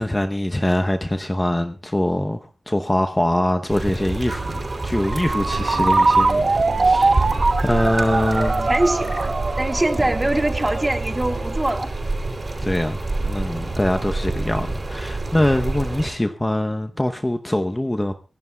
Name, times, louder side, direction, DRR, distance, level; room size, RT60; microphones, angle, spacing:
voice 1, 0.0-8.7 10.0-10.1 12.6-18.1, left 1 dB, 15° left, 0.8 m, -23 dB
sound 1, 3.7-16.1, right 2 dB, 35° right, 5.6 m, -27 dB
Ringtone, 4.3-11.8, right 3 dB, 50° right, 1.3 m, -22 dB
Frog / Percussion / Wood, 5.0-6.2 8.2-9.4, left 3 dB, 70° left, 2.8 m, -43 dB
voice 2, 8.7-11.9, right 1 dB, 20° right, 1.7 m, -23 dB
24.5 x 17.0 x 2.3 m
wide cardioid pair, 110°, 0 cm